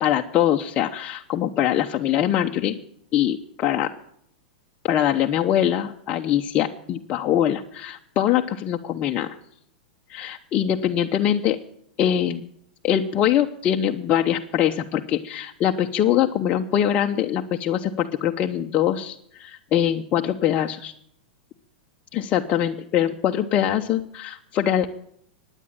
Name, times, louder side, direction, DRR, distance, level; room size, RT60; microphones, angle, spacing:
voice 1, 0.0-2.8 3.1-3.9 4.8-9.4 10.1-11.6 12.0-12.5 12.8-20.9 22.1-24.9, left 10 dB, 30° left, 3 dB, 0.9 m, -23 dB
16.0 x 10.0 x 8.8 m, 0.69 s
hypercardioid pair, 125°, 5 cm